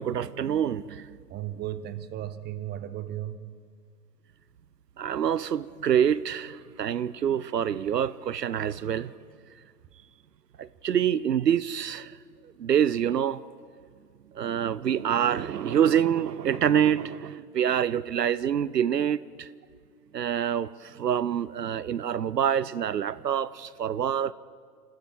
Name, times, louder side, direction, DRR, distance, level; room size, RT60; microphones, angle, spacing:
voice 1, 0.0-1.2 5.0-9.1 10.6-12.2 12.6-13.4 14.3-19.5 20.1-24.3, right 9 dB, 80° right, 0.7 m, -26 dB
voice 2, 1.3-3.5, right 12 dB, 20° right, 1.0 m, -35 dB
27.5 x 14.5 x 7.7 m
figure-of-eight pair, 100°, 48 cm